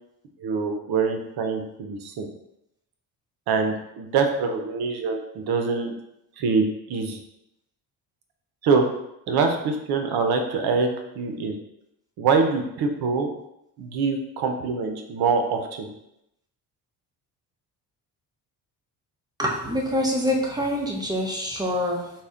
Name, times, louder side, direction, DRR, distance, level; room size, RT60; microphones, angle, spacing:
voice 1, 0.4-2.3 3.5-5.9 6.4-7.2 8.6-8.8 9.3-10.9 11.1-11.6 12.2-13.3 13.8-15.9, right 4 dB, 75° right, 4 dB, 0.7 m, -24 dB
voice 2, 19.4-22.1, equal, 10° right, -1 dB, 0.7 m, -25 dB
4.1 x 2.1 x 3.6 m, 0.82 s
cardioid pair, 100°, 37 cm